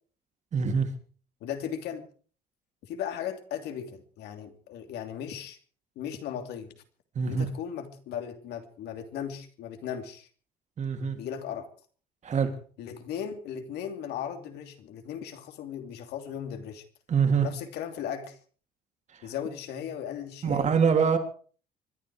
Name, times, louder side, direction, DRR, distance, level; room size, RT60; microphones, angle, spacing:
voice 1, 0.5-0.9 7.1-7.4 10.8-11.2 12.2-12.5 17.1-17.5 20.4-21.2, right 6 dB, 45° right, 6 dB, 3.4 m, -24 dB
voice 2, 1.4-2.1 2.8-5.6 5.9-6.8 7.2-10.3 11.2-11.7 12.8-16.8 17.4-18.4 19.2-20.7, left 8 dB, 80° left, 7 dB, 2.9 m, -37 dB
25.0 x 11.0 x 4.8 m, 0.42 s
cardioid pair, 100°, 17 cm